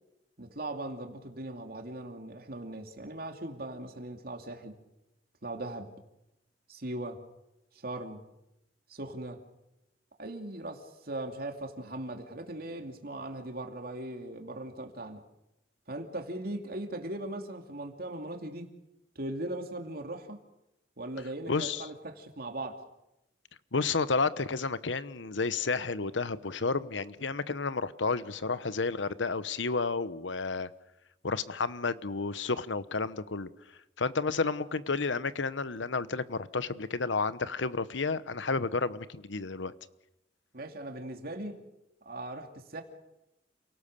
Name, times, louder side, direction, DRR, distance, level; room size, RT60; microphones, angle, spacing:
voice 1, 0.4-4.8 5.4-5.9 6.7-7.2 7.8-8.2 8.9-9.4 10.2-15.2 15.9-18.7 19.2-20.4 21.0-22.8 40.5-41.6 42.1-42.8, right 1 dB, 55° right, 2.7 m, -39 dB
voice 2, 21.5-21.9 23.7-30.7 31.2-33.5 34.0-39.7, left 4 dB, 90° left, 1.0 m, -31 dB
28.5 x 18.0 x 6.8 m
head